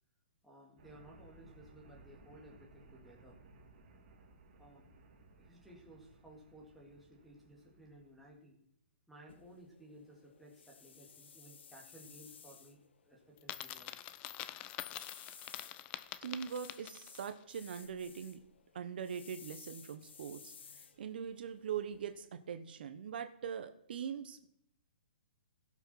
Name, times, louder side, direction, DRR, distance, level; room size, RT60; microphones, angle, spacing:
voice 1, 0.4-3.4 4.6-4.9 5.4-8.6 9.1-13.9 14.3-14.4 15.7-15.9, right 1 dB, ahead, -4 dB, 2.1 m, -58 dB
sound 1, 0.8-8.2, right 2 dB, 35° right, 3.3 m, -61 dB
sound 2, 9.3-22.3, left 6 dB, 75° left, 1.2 m, -58 dB
Coin (dropping), 13.4-17.3, left 13 dB, 20° left, 0.4 m, -45 dB
voice 2, 16.2-18.4 18.7-24.5, right 7 dB, 55° right, 8 dB, 1.0 m, -42 dB
16.5 x 6.2 x 5.7 m, 0.73 s
hypercardioid pair, 165°, 6 cm